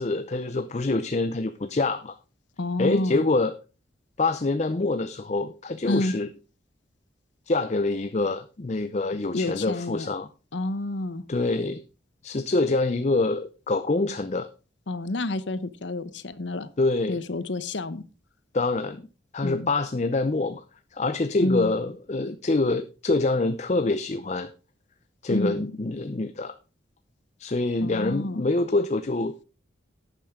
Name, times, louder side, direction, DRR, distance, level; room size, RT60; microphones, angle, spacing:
voice 1, 0.0-2.2 2.8-3.5 4.2-6.3 7.5-10.3 11.3-11.8 12.2-14.5 16.8-17.2 18.5-19.1 19.3-20.6 20.9-24.5 25.2-26.5 27.4-29.4, left 2 dB, 35° left, 11 dB, 0.5 m, -25 dB
voice 2, 2.6-3.2 5.9-6.1 9.3-10.1 10.5-11.2 14.9-16.7 17.1-18.0 19.4-19.7 21.4-21.7 25.3-25.6 27.8-28.4, left 2 dB, 70° left, 15 dB, 0.9 m, -29 dB
11.5 x 9.0 x 3.6 m, 0.33 s
head